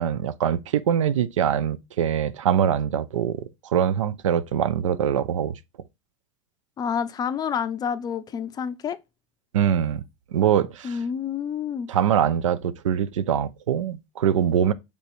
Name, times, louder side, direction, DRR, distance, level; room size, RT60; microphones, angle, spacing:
voice 1, 0.0-5.6 9.5-10.0 10.3-11.0 11.9-14.7, right 9 dB, 90° right, 0.4 m, -23 dB
voice 2, 6.8-9.0 10.8-11.9, left 7 dB, 25° left, 0.4 m, -28 dB
4.1 x 3.4 x 2.5 m
hypercardioid pair, 105°, 16 cm